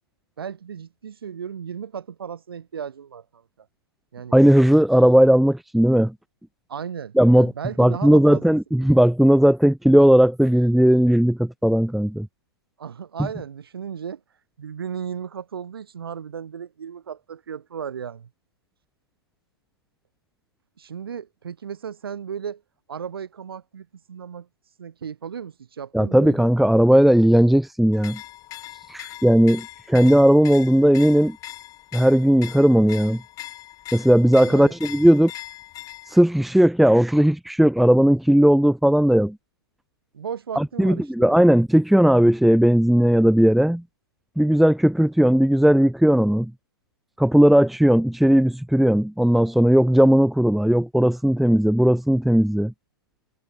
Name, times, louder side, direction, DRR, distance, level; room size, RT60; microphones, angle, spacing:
voice 1, 0.4-3.7 4.1-4.3 6.7-8.6 12.8-14.2 14.6-18.3 20.8-22.6 22.9-24.5 24.8-26.5 34.3-34.7 40.1-41.3, right 7 dB, 65° right, 4.3 m, -35 dB
voice 2, 4.3-6.1 7.2-7.5 7.8-12.3 25.9-28.2 28.9-31.4 31.9-33.2 33.9-35.3 36.1-39.4 40.5-43.8 44.4-46.5 47.2-52.7, equal, ahead, 1.3 m, -17 dB
sound 1, 27.9-36.2, left 15 dB, 25° left, 3.2 m, -40 dB
figure-of-eight pair, 115°, 13 cm